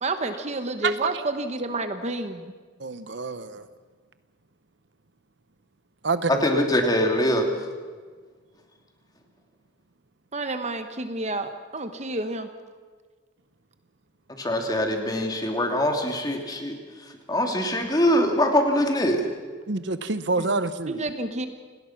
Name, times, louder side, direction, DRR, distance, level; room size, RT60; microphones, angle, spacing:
voice 1, 0.0-2.5 10.3-12.5 20.9-21.5, right 2 dB, 35° right, 1.2 m, -29 dB
voice 2, 2.8-3.6 6.0-6.5 19.7-21.0, right 3 dB, 60° right, 0.8 m, -27 dB
voice 3, 6.3-7.4 14.4-16.8 17.3-19.2, left 1 dB, 20° left, 2.7 m, -23 dB
28.5 x 19.0 x 6.0 m
head